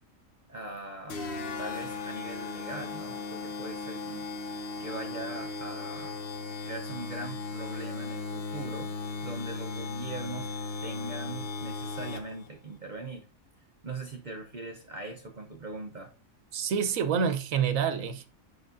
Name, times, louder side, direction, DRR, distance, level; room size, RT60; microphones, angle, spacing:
voice 1, 0.5-1.3 1.6-6.2 6.6-8.9 9.2-10.5 10.8-13.3 13.8-16.1, right 2 dB, 40° right, 0.7 m, -41 dB
sound 1, 1.1-12.5, left 3 dB, 50° left, 0.9 m, -37 dB
voice 2, 16.5-18.3, right 7 dB, 75° right, 1.2 m, -27 dB
7.7 x 6.0 x 2.5 m
omnidirectional pair, 1.4 m